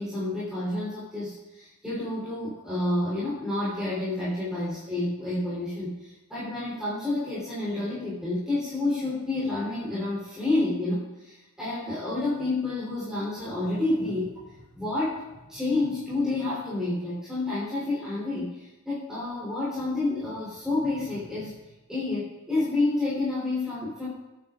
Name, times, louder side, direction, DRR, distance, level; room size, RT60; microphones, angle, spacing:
voice 1, 0.0-15.2 15.5-21.6 21.9-24.1, left 2 dB, 5° right, -9 dB, 3.6 m, -29 dB
23.5 x 9.0 x 2.5 m, 1.0 s
head